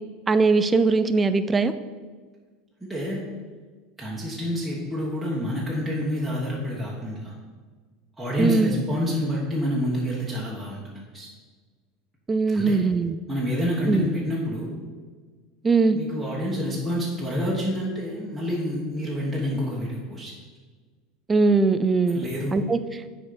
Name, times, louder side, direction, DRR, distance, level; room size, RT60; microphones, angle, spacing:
voice 1, 0.3-1.7 8.4-8.7 12.3-13.2 13.9-14.1 15.6-16.0 21.3-22.8, right 3 dB, 20° right, 11 dB, 0.4 m, -21 dB
voice 2, 2.8-3.2 4.0-7.3 8.2-11.3 12.5-12.8 13.3-14.7 15.9-20.3 22.1-22.5, equal, ahead, -7 dB, 1.4 m, -28 dB
6.1 x 5.0 x 5.9 m, 1.5 s
supercardioid pair, 125°, 0 cm